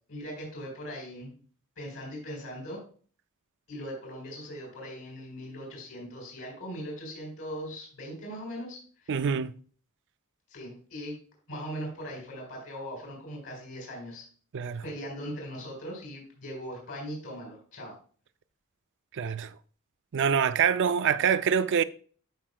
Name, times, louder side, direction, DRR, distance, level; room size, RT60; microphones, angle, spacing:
voice 1, 0.1-1.3 1.8-2.8 3.7-9.1 10.5-11.2 11.5-14.2 14.8-17.9, equal, 70° left, 3.9 m, -40 dB
voice 2, 9.1-9.5 14.5-14.8 19.2-19.5 20.1-21.8, right 7 dB, 55° right, 0.4 m, -25 dB
13.5 x 5.4 x 2.2 m
head